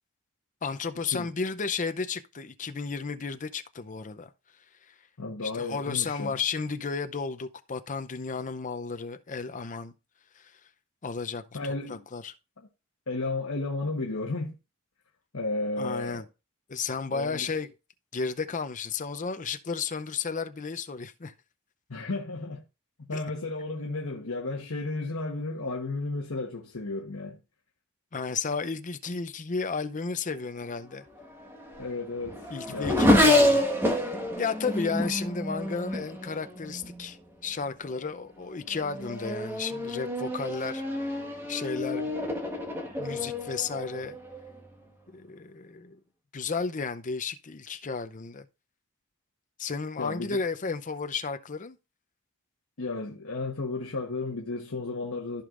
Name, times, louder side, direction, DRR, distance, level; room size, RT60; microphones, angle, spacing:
voice 1, 0.6-4.3 4.9-5.0 5.4-9.9 10.3-10.6 11.0-11.4 11.9-12.3 15.8-16.2 16.7-17.7 18.1-21.3 23.1-23.2 28.1-31.1 32.5-33.7 33.9-40.8 41.5-42.1 43.0-44.2 45.1-46.0 46.3-48.5 49.6-51.8, left 5 dB, 35° left, 0.6 m, -33 dB
voice 2, 5.2-6.4 11.5-12.0 12.6-12.7 13.1-14.5 15.3-16.2 17.1-17.6 21.9-22.6 23.0-27.4 31.8-33.3 50.0-50.4 52.8-55.4, left 3 dB, 75° left, 1.2 m, -33 dB
Race car auto racing / Accelerating revving vroom, 31.2-37.1 37.9-38.2 38.7-44.6, left 1 dB, 10° right, 1.5 m, -28 dB
14.5 x 5.2 x 2.5 m
head